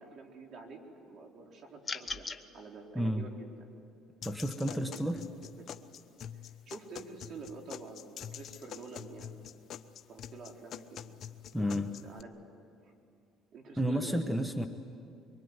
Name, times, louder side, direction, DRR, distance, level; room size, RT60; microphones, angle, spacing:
voice 1, 0.0-2.3 2.5-3.7 4.7-5.7 6.3-9.5 10.1-11.0 11.5-12.4 12.8-12.9 13.5-14.6, right 4 dB, 50° right, 2 dB, 4.2 m, -48 dB
sound 1, 1.8-2.4, left 4 dB, 25° left, 1.1 m, -37 dB
sound 2, 4.2-12.2, left 9 dB, 50° left, 1.0 m, -46 dB
voice 2, 4.2-5.2 11.5-11.9 13.8-14.7, equal, ahead, 7 dB, 1.2 m, -31 dB
24.0 x 24.0 x 9.8 m, 2.5 s
cardioid pair, 105°, 0 cm